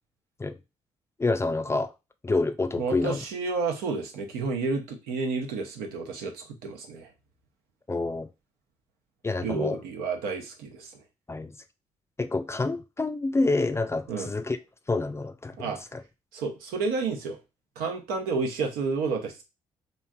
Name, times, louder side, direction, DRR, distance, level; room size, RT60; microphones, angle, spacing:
voice 1, 1.2-1.9 2.2-3.2 7.9-8.3 9.2-9.8 11.3-11.6 12.2-14.6 14.9-16.0, left 3 dB, 20° left, 0.4 m, -28 dB
voice 2, 2.8-7.1 9.4-10.9 14.1-14.3 15.6-15.8 16.3-17.4 17.8-19.4, right 4 dB, 80° right, 0.6 m, -30 dB
3.0 x 2.6 x 2.2 m
hypercardioid pair, 50°, 15 cm